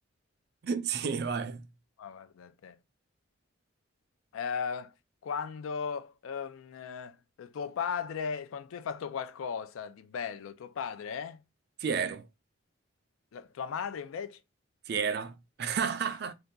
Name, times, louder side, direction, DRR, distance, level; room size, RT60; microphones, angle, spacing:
voice 1, 0.6-1.6 11.8-12.2 14.9-16.3, right 6 dB, 50° right, 0.4 m, -31 dB
voice 2, 2.0-2.8 4.3-4.9 5.2-11.4 13.3-14.4, left 6 dB, 80° left, 0.3 m, -36 dB
2.7 x 2.2 x 3.6 m
head